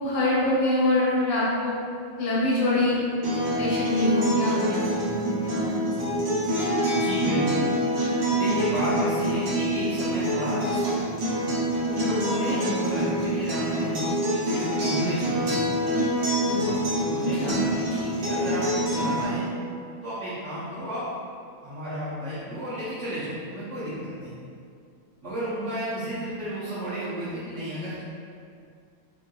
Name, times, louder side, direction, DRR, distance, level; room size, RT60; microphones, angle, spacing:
voice 1, 0.0-1.7 2.2-2.9 3.3-6.2 17.3-17.5, left 1 dB, 80° left, -8 dB, 1.9 m, -25 dB
Acoustic guitar, 3.2-19.2, equal, 65° right, 1.6 m, -26 dB
voice 2, 6.9-7.7 8.3-11.0 11.9-15.6 16.6-19.5 20.0-21.0 21.6-24.3 25.2-28.0, equal, 85° right, -12 dB, 0.6 m, -32 dB
4.3 x 2.6 x 2.3 m, 2.3 s
omnidirectional pair, 2.4 m